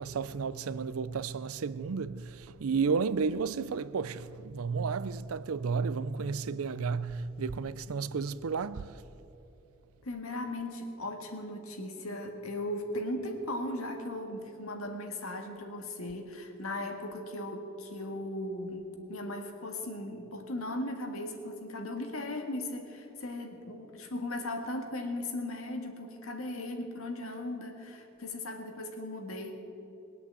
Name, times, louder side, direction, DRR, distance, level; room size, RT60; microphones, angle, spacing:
voice 1, 0.0-9.0, right 5 dB, 85° right, 0.5 m, -32 dB
Keyboard (musical), 6.2-9.3, left 1 dB, 50° right, 2.1 m, -49 dB
voice 2, 10.0-29.5, left 1 dB, 85° left, 1.9 m, -37 dB
20.5 x 8.5 x 7.9 m
head